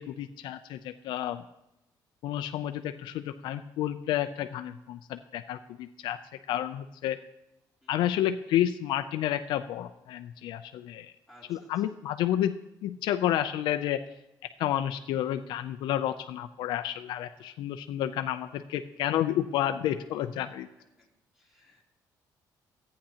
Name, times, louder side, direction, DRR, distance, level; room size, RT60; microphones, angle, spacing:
voice 1, 0.0-1.4 2.2-6.2 6.5-7.2 7.9-11.1 11.5-14.0 14.6-20.7, left 12 dB, 80° left, 9 dB, 0.4 m, -30 dB
voice 2, 11.3-11.9 14.7-14.8 21.0-21.1 21.3-21.8, equal, 5° right, -2 dB, 2.6 m, -58 dB
14.5 x 8.8 x 2.8 m, 0.90 s
cardioid pair, 110°, 8 cm